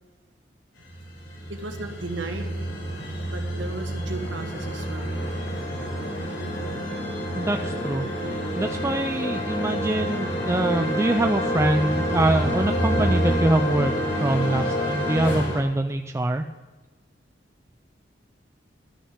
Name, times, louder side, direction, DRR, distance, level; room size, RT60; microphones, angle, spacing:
sound 1, 0.9-15.6, equal, 80° left, 4.8 m, -28 dB
voice 1, 1.5-2.5 3.3-5.2, right 2 dB, 85° right, 4 dB, 1.9 m, -35 dB
voice 2, 7.3-8.1 8.6-13.9 14.2-16.4, right 1 dB, 15° right, 6 dB, 0.5 m, -24 dB
12.5 x 6.7 x 9.6 m, 1.3 s
head